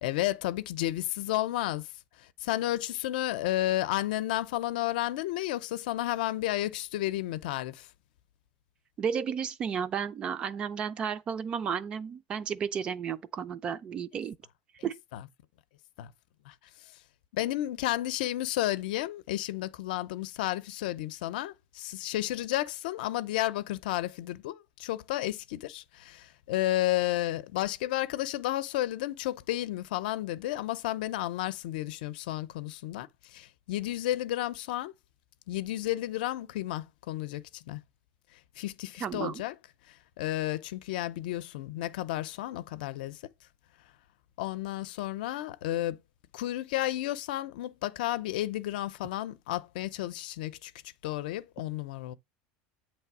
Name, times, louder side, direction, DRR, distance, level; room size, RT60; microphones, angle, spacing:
voice 1, 0.0-1.9 2.2-7.9 15.1-15.2 16.0-16.1 16.5-16.6 17.3-34.9 35.5-37.8 38.6-39.5 39.9-43.3 44.4-46.0 46.3-50.7 51.0-52.1, left 15 dB, 80° left, 0.6 m, -32 dB
voice 2, 9.0-14.4 14.8-15.0 39.0-39.4, right 7 dB, 20° right, 0.3 m, -33 dB
8.4 x 3.2 x 6.0 m
cardioid pair, 180°, 5 cm